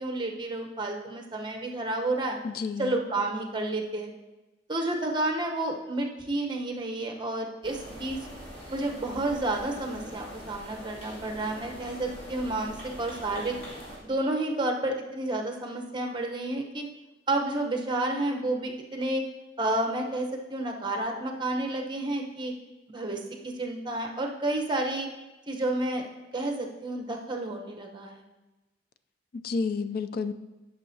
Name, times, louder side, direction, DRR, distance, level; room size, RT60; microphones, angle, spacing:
voice 1, 0.0-2.4 2.8-4.1 4.7-8.2 8.7-13.6 14.0-16.9 17.3-19.2 19.6-22.5 22.9-25.1 25.5-26.0 26.3-28.2, right 2 dB, 25° right, 2 dB, 0.9 m, -30 dB
voice 2, 2.4-3.0 29.3-30.3, left 4 dB, 50° left, 11 dB, 0.3 m, -30 dB
sound 1, 7.6-14.0, equal, 30° left, 2.7 m, -43 dB
13.0 x 6.3 x 2.7 m, 1.1 s
head